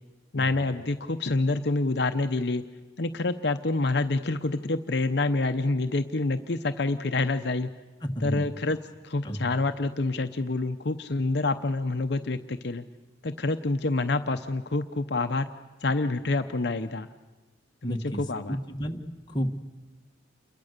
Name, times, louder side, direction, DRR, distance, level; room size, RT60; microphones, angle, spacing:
voice 1, 0.3-2.6 3.0-7.7 8.2-8.8 9.0-12.8 13.2-15.5 15.8-17.1 17.8-18.6, left 2 dB, 60° left, 8 dB, 0.8 m, -27 dB
voice 2, 8.0-8.5 9.2-9.5 17.8-18.2 18.5-19.0 19.3-19.6, equal, 25° left, 2 dB, 1.5 m, -31 dB
29.0 x 23.0 x 6.7 m, 1.2 s
head